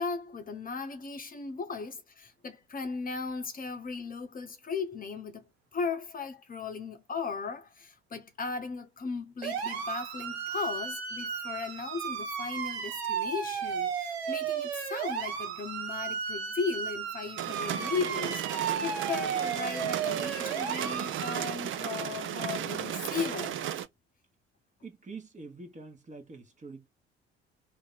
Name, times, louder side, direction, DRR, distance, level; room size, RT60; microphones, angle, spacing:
voice 1, 0.0-23.7, left 5 dB, 25° left, 1.0 m, -37 dB
sound 1, 9.4-21.4, right 7 dB, 70° right, 0.9 m, -34 dB
sound 2, 17.4-23.9, right 10 dB, 40° right, 0.6 m, -35 dB
voice 2, 24.8-26.9, right 4 dB, 20° right, 1.2 m, -45 dB
3.0 x 2.8 x 4.0 m
figure-of-eight pair, 50°, 32 cm